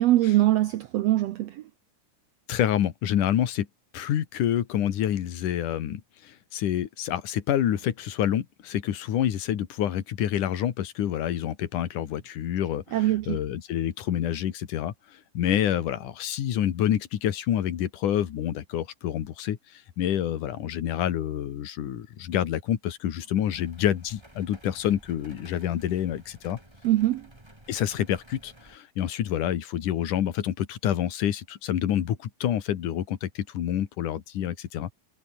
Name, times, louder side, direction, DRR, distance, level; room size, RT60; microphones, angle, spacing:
voice 1, 0.0-1.6 12.9-13.4 26.8-27.3, right 15 dB, 90° right, 1.4 m, -22 dB
voice 2, 2.5-3.7 3.9-26.6 27.7-34.9, left 10 dB, 65° left, 3.2 m, -28 dB
sound 1, 23.5-28.8, right 1 dB, 5° right, 4.3 m, -53 dB
omnidirectional pair, 4.0 m